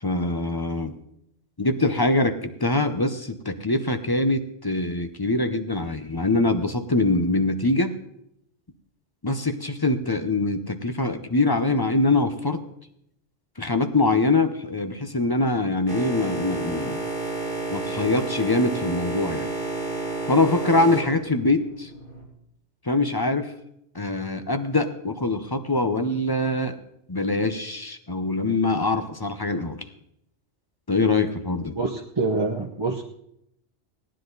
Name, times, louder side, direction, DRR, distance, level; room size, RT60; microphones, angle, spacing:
voice 1, 0.0-0.9 1.6-7.9 9.2-12.6 13.6-17.1 17.7-19.5 20.3-21.9 22.8-23.5 23.9-26.8 27.1-29.8 30.9-31.8, left 2 dB, 25° left, 8 dB, 0.7 m, -23 dB
Boat Water vehicle, 15.9-22.2, right 2 dB, 45° left, 3.1 m, -31 dB
voice 2, 31.7-33.0, right 3 dB, 25° right, -1 dB, 0.9 m, -26 dB
17.0 x 10.0 x 4.0 m, 0.75 s
omnidirectional pair, 1.2 m